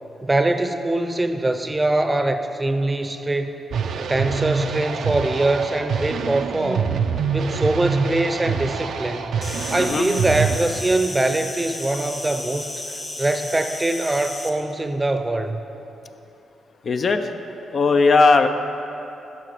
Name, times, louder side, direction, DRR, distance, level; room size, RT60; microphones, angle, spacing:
voice 1, 0.2-3.6 4.0-6.9 7.3-9.2 9.7-12.7 13.2-15.6, right 2 dB, 20° right, 8 dB, 0.6 m, -23 dB
sound 1, 3.7-10.6, right 6 dB, 70° right, 0.5 m, -25 dB
Insect, 9.4-14.5, left 2 dB, 30° left, 1.3 m, -33 dB
voice 2, 9.7-10.1 16.9-17.3 17.7-18.5, left 4 dB, 55° left, 7 dB, 0.5 m, -17 dB
10.5 x 5.7 x 4.9 m, 3.0 s
supercardioid pair, 55°, 0 cm